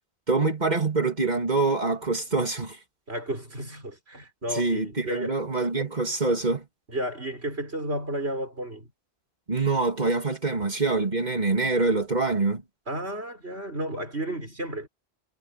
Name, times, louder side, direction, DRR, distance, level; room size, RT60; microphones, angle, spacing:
voice 1, 0.3-2.8 4.5-6.6 9.5-12.6, right 3 dB, 45° right, 3.2 m, -25 dB
voice 2, 3.1-5.4 6.9-8.9 12.9-14.9, right 1 dB, 90° right, 6.5 m, -32 dB
omnidirectional pair, 1.1 m